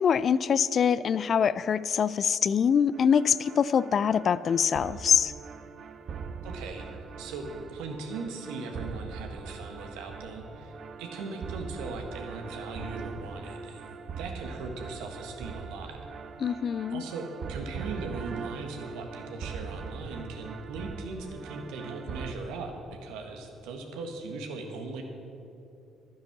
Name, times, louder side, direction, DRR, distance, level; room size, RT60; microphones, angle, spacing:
voice 1, 0.0-5.3 16.4-17.0, left 7 dB, 50° left, 17 dB, 0.4 m, -24 dB
sound 1, 2.9-22.3, right 5 dB, 55° right, 0.7 m, -41 dB
voice 2, 6.4-16.0 16.9-25.0, right 3 dB, 75° right, 3 dB, 1.5 m, -39 dB
12.0 x 9.5 x 6.0 m, 2.8 s
hypercardioid pair, 55°, 0 cm